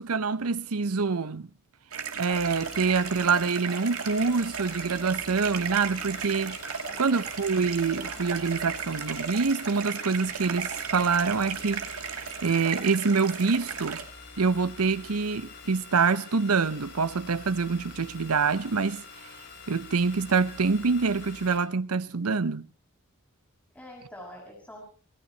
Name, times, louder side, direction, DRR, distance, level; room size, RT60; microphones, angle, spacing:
voice 1, 0.0-1.5 2.2-6.6 7.0-11.8 12.4-14.0 14.4-19.0 19.7-22.7, right 4 dB, 90° right, 0.8 m, -26 dB
sound 1, 1.9-14.0, right 6 dB, 75° right, 2.7 m, -35 dB
sound 2, 2.3-21.6, left 4 dB, 55° left, 6.3 m, -46 dB
voice 2, 6.8-7.3 23.7-24.8, left 1 dB, 5° left, 6.2 m, -46 dB
27.0 x 18.0 x 3.0 m
head